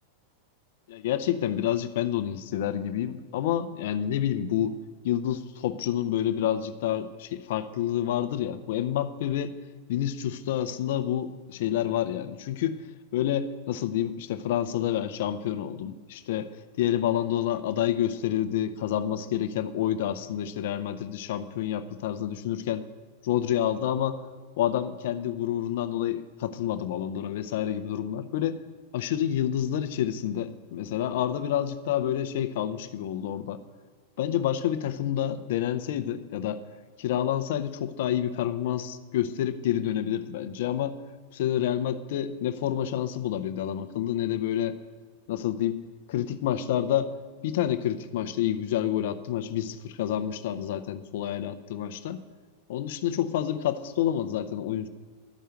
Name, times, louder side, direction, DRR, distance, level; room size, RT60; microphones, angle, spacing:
voice 1, 0.9-4.8 5.0-9.5 9.9-12.8 13.1-16.5 16.8-22.9 23.2-24.3 24.6-28.6 28.9-33.6 34.2-36.6 37.0-41.0 41.3-44.8 45.3-45.8 46.1-47.1 47.4-52.2 52.7-54.9, left 11 dB, 55° left, 12 dB, 0.6 m, -28 dB
12.5 x 5.6 x 7.8 m, 1.5 s
figure-of-eight pair, 90°, 0 cm